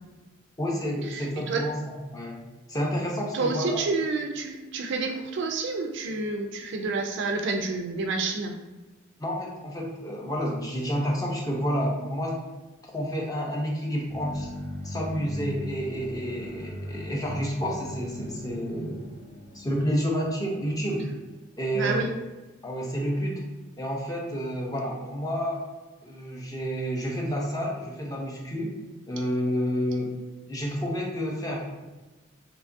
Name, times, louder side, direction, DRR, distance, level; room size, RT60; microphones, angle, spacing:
voice 1, 0.6-2.4 2.7-3.8 9.2-12.4 12.8-14.5 14.8-19.1 19.5-21.0 21.6-22.1 22.6-23.4 23.8-25.6 26.0-28.7 29.1-30.1 30.5-31.9, equal, 20° left, -2 dB, 0.4 m, -29 dB
voice 2, 1.1-1.6 3.3-8.6 21.7-22.1, right 3 dB, 60° right, 3 dB, 0.3 m, -29 dB
sound 1, 14.1-21.8, left 1 dB, 85° left, 0.7 m, -40 dB
2.8 x 2.3 x 2.5 m, 1.1 s
head